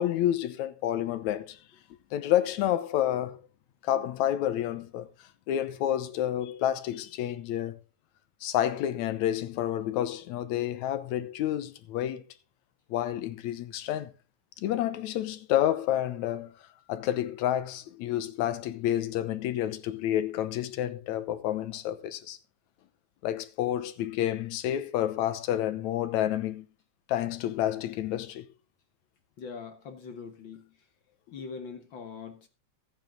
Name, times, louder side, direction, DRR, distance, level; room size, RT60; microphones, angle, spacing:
voice 1, 0.0-1.6 2.1-3.4 3.8-7.8 8.4-12.2 12.9-14.1 14.6-16.6 16.9-22.4 23.2-26.7 27.1-28.5, left 12 dB, 75° left, 2.3 m, -29 dB
voice 2, 29.4-30.8 31.3-32.5, left 5 dB, 55° left, 1.5 m, -42 dB
14.5 x 9.0 x 3.7 m
omnidirectional pair, 3.4 m